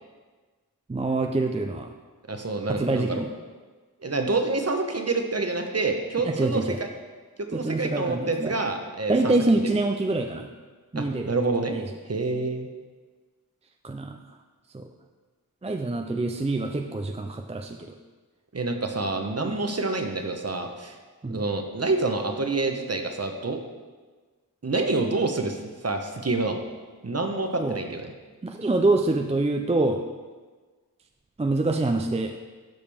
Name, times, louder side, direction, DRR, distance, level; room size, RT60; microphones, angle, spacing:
voice 1, 0.9-1.9 2.7-3.3 6.2-6.8 7.5-8.6 9.1-10.5 10.9-11.3 11.7-11.8 13.8-14.2 14.7-14.9 15.6-17.8 19.4-19.6 21.2-21.4 27.6-27.8 28.4-30.0 31.4-32.4, right 2 dB, 20° right, 4 dB, 0.5 m, -25 dB
voice 2, 2.3-3.2 4.0-6.9 7.4-9.3 11.0-11.8 12.1-12.7 18.5-21.0 21.3-23.6 24.6-26.6 27.0-28.1, right 3 dB, 40° right, 5 dB, 1.0 m, -27 dB
12.0 x 5.1 x 3.5 m, 1.4 s
wide cardioid pair, 45°, 37 cm